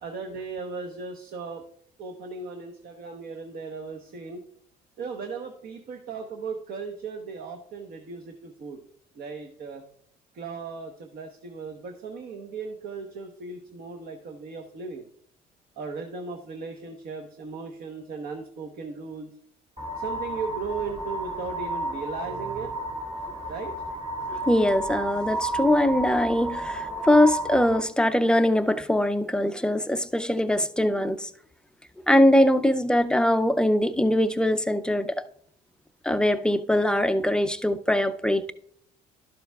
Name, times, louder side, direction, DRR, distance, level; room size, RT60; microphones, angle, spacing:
voice 1, 0.0-1.6 2.0-4.4 5.0-8.8 9.2-9.8 10.3-15.0 15.8-19.3 20.0-22.7 23.5-23.7, right 4 dB, 60° right, 1.0 m, -37 dB
sound 1, 19.8-27.8, right 1 dB, 30° right, 1.9 m, -32 dB
voice 2, 24.5-31.3 32.1-35.2 36.0-38.4, left 1 dB, 5° left, 0.4 m, -22 dB
12.0 x 6.9 x 2.3 m
cardioid pair, 110°, 17 cm